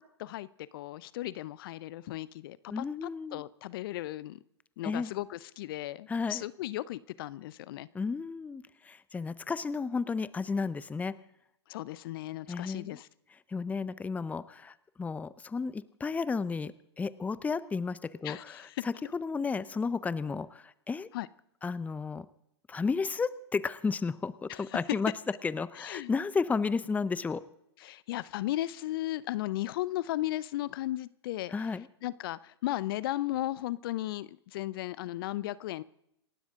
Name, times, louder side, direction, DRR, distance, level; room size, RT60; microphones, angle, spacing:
voice 1, 0.7-4.4 4.8-7.9 11.7-13.1 18.2-18.8 21.1-21.3 24.5-24.8 25.8-26.1 27.8-31.7 32.0-35.8, left 15 dB, 55° left, 19 dB, 0.7 m, -36 dB
voice 2, 2.7-3.4 4.8-5.1 6.1-6.4 7.9-11.1 12.5-13.0 13.5-21.1 21.6-22.3 22.7-25.1 25.4-27.4 31.5-31.9, left 4 dB, 10° left, 17 dB, 0.7 m, -33 dB
28.0 x 12.5 x 3.7 m, 0.78 s
hypercardioid pair, 105°, 14 cm